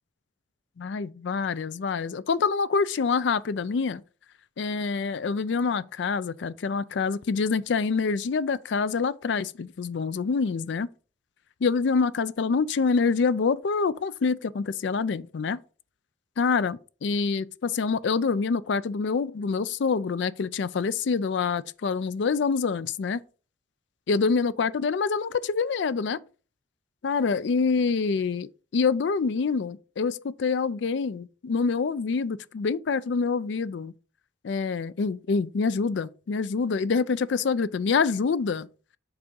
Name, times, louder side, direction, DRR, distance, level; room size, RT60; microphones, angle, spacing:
voice 1, 0.8-4.0 4.6-10.9 11.6-15.6 16.4-23.2 24.1-26.2 27.0-28.5 28.7-33.9 34.4-38.7, left 5 dB, 70° left, 0.4 m, -26 dB
8.0 x 3.5 x 5.3 m
head